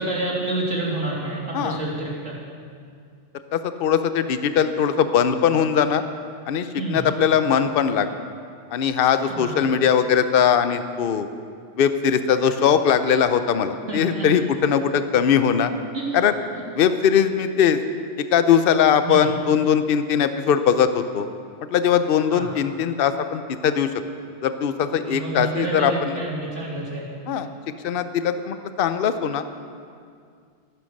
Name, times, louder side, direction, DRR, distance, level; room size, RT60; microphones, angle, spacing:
voice 1, 0.0-2.4 6.8-7.0 9.3-9.6 13.9-14.3 15.9-16.2 19.0-19.3 22.3-22.5 25.0-27.1, right 2 dB, 80° right, -5 dB, 3.4 m, -28 dB
voice 2, 3.5-6.0 6.5-8.1 8.7-11.3 11.8-15.7 16.1-16.3 16.7-17.8 18.3-21.3 21.7-23.9 24.4-26.2 27.3-27.5 27.8-29.4, left 8 dB, 55° left, 10 dB, 0.8 m, -20 dB
14.0 x 11.0 x 6.5 m, 2.2 s
omnidirectional pair, 1.2 m